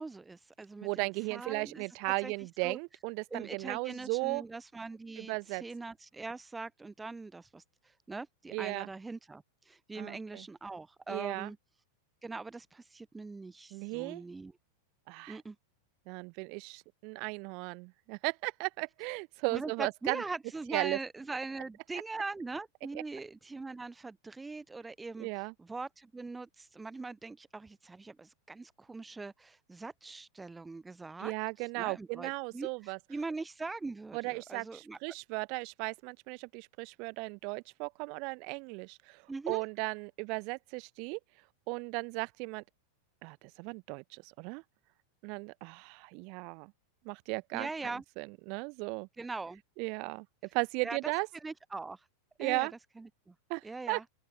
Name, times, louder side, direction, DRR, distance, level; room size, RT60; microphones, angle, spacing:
voice 1, 0.0-2.3 2.6-2.8 3.3-11.6 12.2-14.5 15.3-15.6 19.5-31.3 31.8-35.0 39.3-39.6 47.5-48.0 49.2-49.6 50.8-51.0 51.4-52.1 52.4-52.7 53.0-53.3 53.6-54.0, right 3 dB, 10° right, 0.4 m, -42 dB
voice 2, 0.8-4.4 5.2-5.6 8.5-8.9 10.0-10.4 11.1-11.5 13.7-14.2 15.1-15.4 16.1-20.2 20.7-21.0 25.2-25.5 31.2-33.0 34.1-41.2 41.7-42.6 43.2-44.6 45.2-46.7 47.0-47.7 48.2-49.1 49.8-50.3 50.5-51.3 52.4-52.7 53.5-54.0, right 32 dB, 45° right, 1.0 m, -36 dB
open air
figure-of-eight pair, 90°, 0 cm